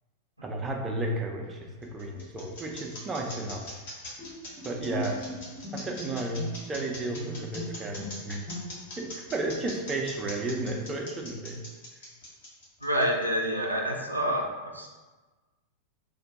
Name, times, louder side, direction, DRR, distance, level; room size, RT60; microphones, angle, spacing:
voice 1, 0.4-3.7 4.6-5.2 5.7-8.4 9.0-11.6, right 2 dB, 20° right, 1 dB, 0.4 m, -33 dB
sound 1, 1.4-13.4, left 1 dB, 55° left, 0.9 m, -43 dB
Bowed string instrument, 4.2-9.0, equal, 10° left, 0.7 m, -40 dB
voice 2, 12.8-14.5 14.7-14.9, equal, 85° right, 0 dB, 0.4 m, -27 dB
2.5 x 2.2 x 3.8 m, 1.3 s
figure-of-eight pair, 90°, 0 cm